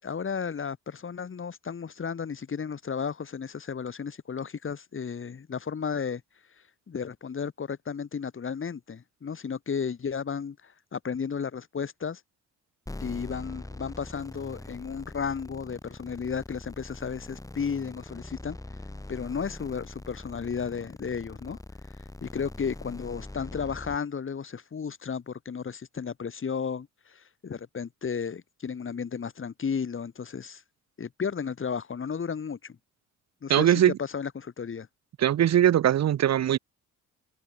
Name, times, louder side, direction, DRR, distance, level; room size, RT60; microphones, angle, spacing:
voice 1, 0.0-6.2 6.9-12.2 13.0-18.6 19.1-21.6 22.2-30.6 31.0-32.8 33.4-34.9, left 6 dB, 45° left, 7.0 m, -33 dB
sound 1, 12.9-24.0, left 2 dB, 10° left, 6.2 m, -42 dB
voice 2, 33.5-33.9 35.2-36.6, right 11 dB, 60° right, 1.4 m, -21 dB
cardioid pair, 90°, 30 cm